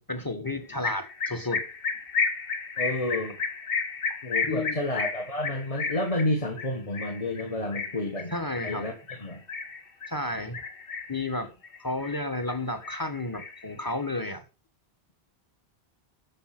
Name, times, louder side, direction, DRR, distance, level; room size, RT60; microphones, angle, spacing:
voice 1, 0.0-1.7 4.5-4.8 8.3-8.9 10.1-10.6 11.1-11.5 11.8-14.4, left 2 dB, 20° left, 1.3 m, -32 dB
sound 1, 0.8-10.2 10.5-11.3 11.6-12.6 12.8-14.2, left 4 dB, 65° left, 1.3 m, -32 dB
voice 2, 2.8-3.4 4.2-8.3 8.6-9.4, left 1 dB, 35° left, 1.6 m, -30 dB
12.5 x 4.9 x 6.0 m
omnidirectional pair, 1.0 m